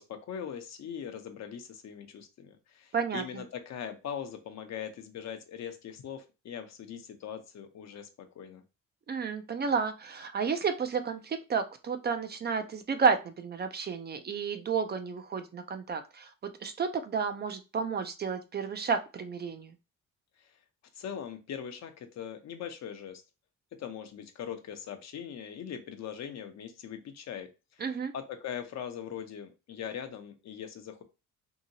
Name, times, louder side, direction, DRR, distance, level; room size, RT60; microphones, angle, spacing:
voice 1, 0.0-8.6 20.4-20.6 20.9-23.2 23.7-31.0, left 8 dB, 60° left, 7 dB, 0.7 m, -41 dB
voice 2, 2.9-3.2 9.1-16.3 16.6-19.7 27.8-28.1, right 5 dB, 35° right, 8 dB, 0.4 m, -31 dB
2.8 x 2.7 x 2.7 m, 0.29 s
cardioid pair, 90°, 30 cm